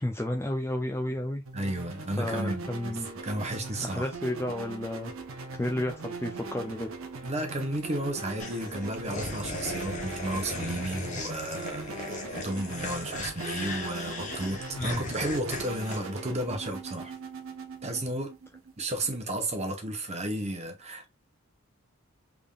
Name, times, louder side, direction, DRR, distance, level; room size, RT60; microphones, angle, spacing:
voice 1, 0.0-1.4 2.2-3.1 3.8-5.1 5.5-6.9 14.7-15.0, left 1 dB, 10° left, 0.4 m, -32 dB
voice 2, 1.5-2.7 3.2-4.0 7.2-17.1 17.8-18.3 18.8-21.1, right 1 dB, 30° right, 0.9 m, -33 dB
sound 1, 1.5-19.2, right 3 dB, 65° right, 0.7 m, -41 dB
sound 2, 8.4-16.0, left 2 dB, 35° left, 0.9 m, -37 dB
3.6 x 3.5 x 2.3 m
head